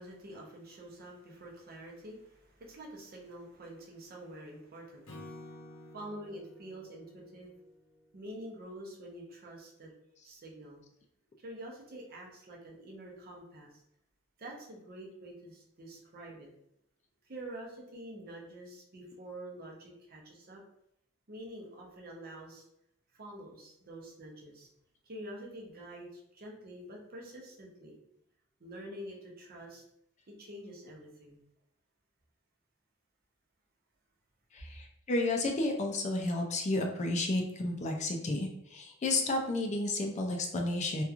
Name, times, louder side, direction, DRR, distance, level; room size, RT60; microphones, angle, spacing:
voice 1, 0.0-5.1 5.9-7.5 8.1-9.9 10.2-10.8 11.4-13.7 14.4-16.5 17.2-20.6 21.3-22.6 23.2-24.7 25.0-28.0 28.6-29.8 30.3-31.4, right 1 dB, 45° right, -1 dB, 0.6 m, -47 dB
Acoustic guitar / Strum, 5.1-8.4, left 1 dB, 90° left, 0.7 m, -51 dB
voice 2, 34.5-41.0, left 2 dB, 35° left, 2 dB, 0.4 m, -32 dB
2.9 x 2.3 x 2.4 m, 0.77 s
head